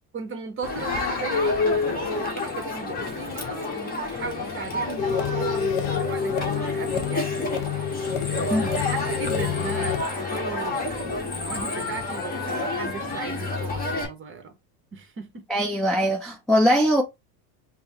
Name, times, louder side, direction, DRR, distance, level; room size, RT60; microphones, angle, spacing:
voice 1, 0.1-7.6 8.2-14.6 14.9-15.5 15.7-15.8, right 5 dB, 25° right, 0.8 m, -36 dB
Crowd, 0.6-14.1, left 3 dB, 20° left, 1.0 m, -29 dB
sound 1, 5.0-10.0, left 7 dB, 55° left, 0.6 m, -28 dB
voice 2, 15.5-17.0, equal, ahead, 0.3 m, -21 dB
5.3 x 2.0 x 2.8 m
supercardioid pair, 115°, 46 cm